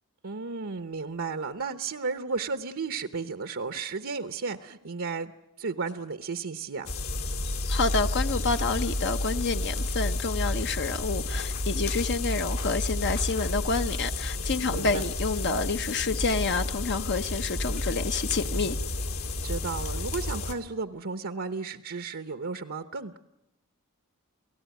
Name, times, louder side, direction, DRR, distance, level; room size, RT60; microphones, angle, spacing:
voice 1, 0.2-5.3 5.6-6.9 14.7-15.0 19.4-23.2, right 4 dB, 65° right, 0.9 m, -33 dB
sound 1, 6.9-20.5, left 2 dB, 70° left, 2.7 m, -31 dB
voice 2, 7.7-18.8, left 4 dB, 50° left, 0.9 m, -29 dB
29.0 x 17.5 x 9.3 m
head